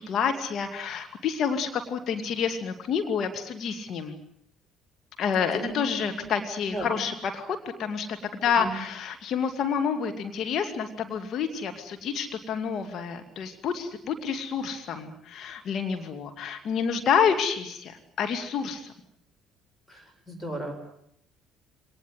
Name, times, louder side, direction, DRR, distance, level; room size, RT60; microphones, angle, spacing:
voice 1, 0.0-4.2 5.2-8.1 8.3-18.9, left 7 dB, 50° left, 6 dB, 2.3 m, -28 dB
voice 2, 6.7-7.0 8.6-8.7 19.9-20.7, right 1 dB, 10° left, 7 dB, 7.5 m, -35 dB
24.5 x 19.0 x 9.5 m, 0.70 s
figure-of-eight pair, 55°, 0 cm